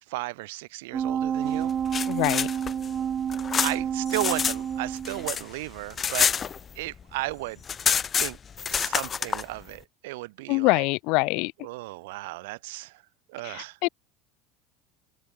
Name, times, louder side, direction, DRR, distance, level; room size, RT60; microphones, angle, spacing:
voice 1, 0.1-1.7 3.5-6.3 6.8-7.6 8.2-8.4 8.7-10.9 11.6-13.0 13.3-13.8, right 22 dB, 70° right, 1.9 m, -34 dB
sound 1, 0.9-5.5 5.9-6.0, right 8 dB, 20° right, 0.4 m, -29 dB
sound 2, 1.7-4.6 4.9-7.0 7.3-7.4 7.6-9.4, left 7 dB, 20° left, 1.2 m, -27 dB
voice 2, 2.1-2.5 10.5-11.5 13.4-13.9, left 27 dB, 50° left, 1.0 m, -24 dB
open air
cardioid pair, 175°, 0 cm